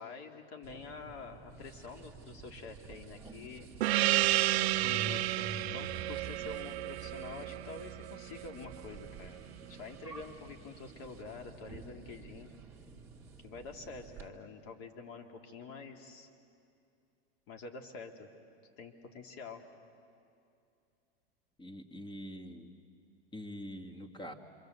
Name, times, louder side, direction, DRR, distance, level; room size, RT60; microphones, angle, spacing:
voice 1, 0.0-3.7 4.7-9.4 9.7-12.5 13.4-16.3 17.5-18.3 18.8-19.6, left 4 dB, 45° left, 4 dB, 2.8 m, -47 dB
sound 1, 0.6-14.3, right 4 dB, 10° right, 2.4 m, -49 dB
Gong, 3.8-8.8, right 16 dB, 85° right, 0.6 m, -31 dB
voice 2, 21.6-22.7 23.3-24.3, equal, 15° left, 5 dB, 2.0 m, -44 dB
27.5 x 25.5 x 8.1 m, 2.5 s
supercardioid pair, 140°, 31 cm